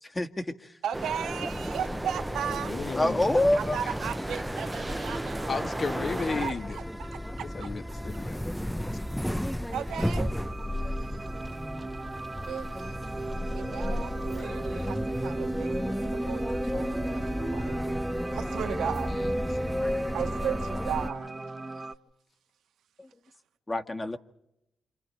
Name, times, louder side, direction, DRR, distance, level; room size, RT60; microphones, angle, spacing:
voice 1, 0.0-0.7 2.9-3.8 23.0-23.1 23.7-24.2, left 1 dB, 25° left, 2.0 m, -26 dB
voice 2, 0.8-2.7 3.6-5.6 6.2-7.7 9.7-10.3 12.4-12.9 13.5-17.8 18.3-19.1 20.1-21.3, right 9 dB, 85° right, 1.9 m, -36 dB
sound 1, 0.9-6.5, right 1 dB, 15° right, 1.2 m, -34 dB
sound 2, 1.5-21.1, equal, ahead, 0.9 m, -33 dB
voice 3, 2.4-3.3 5.5-6.8 7.4-8.4 18.6-18.8 19.1-19.3, left 4 dB, 55° left, 2.0 m, -34 dB
sound 3, 9.9-21.9, right 2 dB, 30° right, 1.6 m, -37 dB
29.0 x 27.5 x 4.6 m
supercardioid pair, 50°, 0 cm